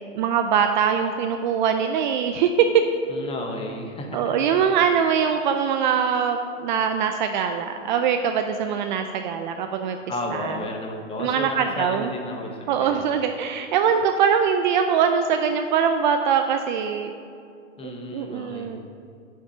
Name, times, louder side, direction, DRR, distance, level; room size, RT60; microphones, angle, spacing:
voice 1, 0.1-2.7 4.1-10.0 10.3-10.6 11.2-12.1 12.7-17.1 17.8-18.8, right 7 dB, 40° right, 7 dB, 0.4 m, -22 dB
voice 2, 3.1-4.2 10.1-13.0 17.8-18.7, left 1 dB, 15° left, 2 dB, 1.0 m, -32 dB
7.3 x 5.9 x 6.6 m, 2.4 s
hypercardioid pair, 135°, 38 cm